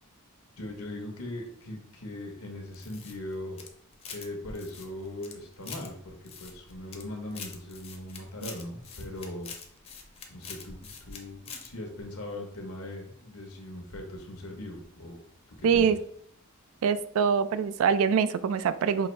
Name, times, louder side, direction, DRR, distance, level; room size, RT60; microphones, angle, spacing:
voice 1, 0.6-3.7 4.1-9.5 10.3-15.2 15.5-15.9, left 1 dB, 85° left, 2 dB, 1.1 m, -40 dB
sound 1, 2.7-4.3 4.5-5.9 6.2-7.0 7.3-11.2 11.4-11.7, left 6 dB, 30° left, 0.6 m, -44 dB
voice 2, 15.6-16.0 16.8-19.1, right 6 dB, 65° right, 13 dB, 0.3 m, -24 dB
5.6 x 2.6 x 3.2 m, 0.65 s
head